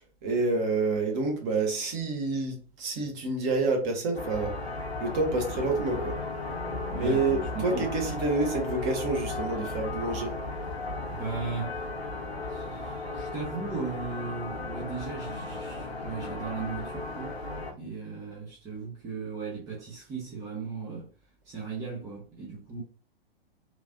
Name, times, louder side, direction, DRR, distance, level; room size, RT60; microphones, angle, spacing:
voice 1, 0.2-4.6 5.0-6.2 7.0-10.4, right 3 dB, 30° right, 1.0 m, -28 dB
sound 1, 4.1-17.7, left 3 dB, 85° left, 0.8 m, -35 dB
voice 2, 6.9-7.9 11.1-11.9 12.5-17.4 17.7-21.1 21.4-22.8, right 4 dB, 10° right, 0.4 m, -37 dB
3.1 x 2.4 x 2.5 m
figure-of-eight pair, 110°, 31 cm